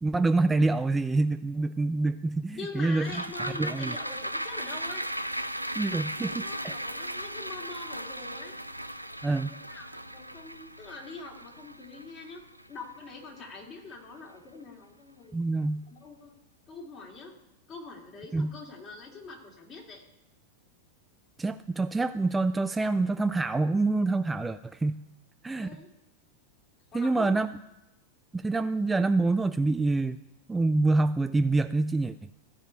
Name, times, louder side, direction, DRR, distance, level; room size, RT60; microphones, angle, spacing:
voice 1, 0.0-3.2 3.6-3.9 5.8-6.5 9.2-9.5 15.3-15.8 18.3-18.5 21.4-25.0 25.4-25.7 26.9-27.5 28.3-30.2 30.5-32.1, right 3 dB, 10° right, 11 dB, 0.3 m, -26 dB
voice 2, 2.6-5.1 6.2-8.6 9.4-12.4 12.7-15.4 15.9-16.3 16.7-17.3 17.7-20.0 25.6-25.9 26.9-27.4, left 3 dB, 30° left, -1 dB, 2.8 m, -44 dB
sound 1, 3.0-13.6 13.9-14.0, right 1 dB, 90° right, 0.4 m, -37 dB
14.5 x 5.0 x 8.3 m, 0.94 s
figure-of-eight pair, 90°, 0 cm